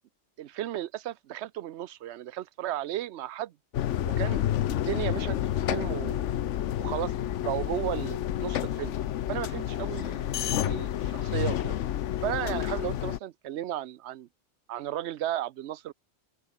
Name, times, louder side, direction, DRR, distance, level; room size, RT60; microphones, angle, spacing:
voice 1, 0.4-3.5 4.0-4.4 4.7-6.2 6.8-7.1 7.4-9.0 9.3-11.7 12.2-14.3 14.7-15.9, right 12 dB, 75° right, 0.9 m, -34 dB
sound 1, 3.7-13.2, left 11 dB, 85° left, 1.0 m, -29 dB
open air
omnidirectional pair, 1.2 m